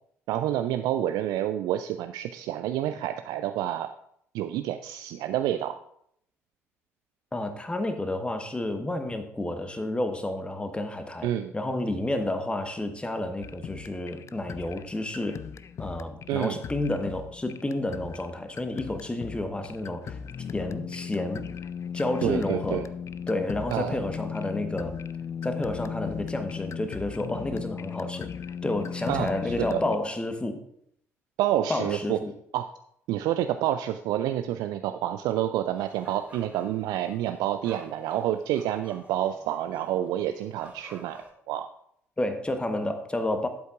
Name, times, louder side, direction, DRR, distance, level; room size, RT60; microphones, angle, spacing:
voice 1, 0.3-3.9 4.3-5.7 11.2-11.5 16.3-16.6 22.2-22.9 23.7-24.0 29.1-29.8 31.4-32.2 32.5-32.7 33.1-41.7, right 12 dB, 60° right, 9 dB, 0.4 m, -28 dB
voice 2, 7.3-15.4 15.8-20.2 20.5-21.5 21.9-22.9 23.3-25.0 25.4-28.3 28.6-30.6 31.7-32.3 42.2-43.5, left 1 dB, 15° left, 7 dB, 1.2 m, -30 dB
sound 1, 13.4-30.0, left 7 dB, 40° left, 0.4 m, -37 dB
sound 2, 35.7-41.3, right 2 dB, 15° right, 2.0 m, -51 dB
12.0 x 8.0 x 2.5 m, 0.70 s
figure-of-eight pair, 50°, 8 cm